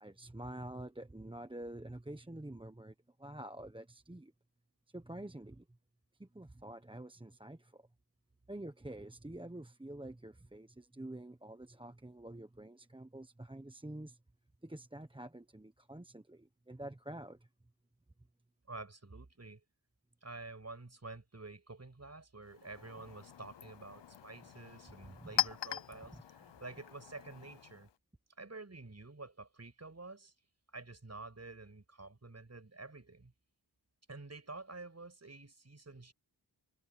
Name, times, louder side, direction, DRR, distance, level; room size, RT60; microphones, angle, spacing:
voice 1, 0.0-4.3 4.9-5.6 6.2-7.9 8.5-14.2 14.6-17.4 25.0-25.3, right 1 dB, 10° right, 1.1 m, -47 dB
voice 2, 18.7-19.6 20.2-27.9 28.4-30.3 30.7-33.3 34.1-36.1, right 3 dB, 40° right, 6.4 m, -49 dB
Chink clink, 22.4-28.0, left 10 dB, 85° left, 0.8 m, -41 dB
wide cardioid pair, 80°, 42 cm